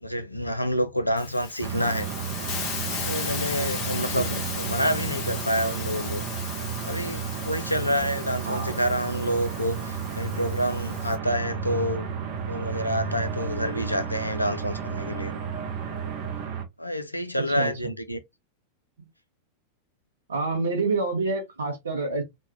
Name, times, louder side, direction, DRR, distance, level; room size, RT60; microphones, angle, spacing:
voice 1, 0.0-2.1 3.0-6.2 6.8-12.1 12.5-15.4 16.8-18.2, equal, 85° left, 0.4 m, -28 dB
Hiss, 1.2-11.2, left 6 dB, 40° left, 0.8 m, -36 dB
sound 1, 1.6-16.7, right 8 dB, 45° right, 0.6 m, -33 dB
sound 2, 2.0-16.5, right 1 dB, 15° right, 0.8 m, -41 dB
voice 2, 4.1-4.5 8.4-8.8 17.5-17.7 20.3-22.2, right 3 dB, 70° right, 1.1 m, -28 dB
3.3 x 2.2 x 2.6 m
figure-of-eight pair, 90°, 0 cm